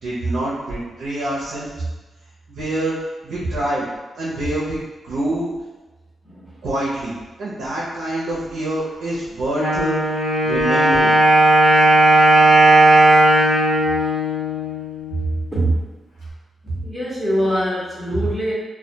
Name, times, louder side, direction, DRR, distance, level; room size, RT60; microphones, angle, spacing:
voice 1, 0.0-1.7 2.5-2.9 3.2-3.9 4.2-5.5 6.6-10.0 10.4-11.1, right 1 dB, 80° right, -7 dB, 0.5 m, -26 dB
Wind instrument woodwind instrument, 9.6-15.3, right 1 dB, 80° left, 0.8 m, -15 dB
voice 2, 15.2-15.8 16.6-18.5, right 1 dB, ahead, -7 dB, 0.8 m, -23 dB
2.1 x 2.1 x 2.7 m, 1.2 s
cardioid pair, 115°, 0 cm